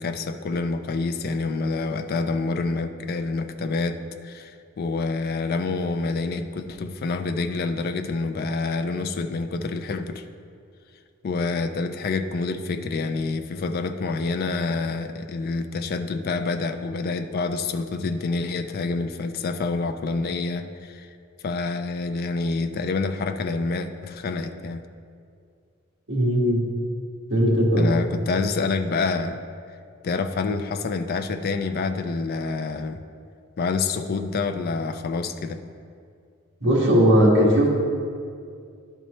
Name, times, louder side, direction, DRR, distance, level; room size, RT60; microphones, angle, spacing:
voice 1, 0.0-10.2 11.2-21.1 21.4-24.8 27.8-29.4 30.0-33.0 33.6-35.6, left 3 dB, 45° left, 7 dB, 0.4 m, -27 dB
voice 2, 26.1-26.6 27.3-27.8 36.6-37.7, equal, 55° right, -4 dB, 1.5 m, -18 dB
11.0 x 4.4 x 3.1 m, 2.3 s
head